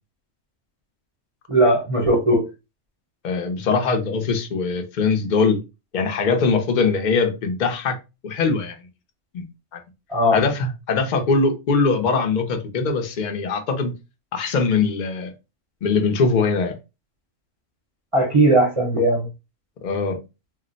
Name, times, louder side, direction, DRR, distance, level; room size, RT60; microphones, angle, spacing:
voice 1, 1.5-2.4 10.1-10.4 18.1-19.3, right 1 dB, 30° right, 0.7 m, -18 dB
voice 2, 3.2-5.6 5.9-8.0 8.2-8.9 9.3-9.8 10.3-13.9 14.3-15.3 15.8-16.7 19.8-20.2, left 4 dB, 50° left, 0.6 m, -22 dB
2.4 x 2.0 x 3.8 m
omnidirectional pair, 1.4 m